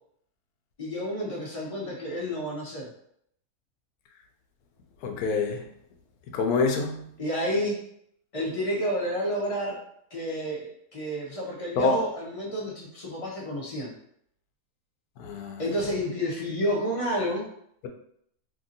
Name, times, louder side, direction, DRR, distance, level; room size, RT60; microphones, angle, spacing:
voice 1, 0.8-2.9 7.2-7.8 8.3-9.8 10.1-13.9 15.6-17.5, equal, 35° left, 0.5 m, -30 dB
voice 2, 5.0-5.6 6.3-7.0 11.8-12.0 15.2-15.6, left 4 dB, 85° left, 1.1 m, -25 dB
2.9 x 2.7 x 2.5 m
omnidirectional pair, 1.6 m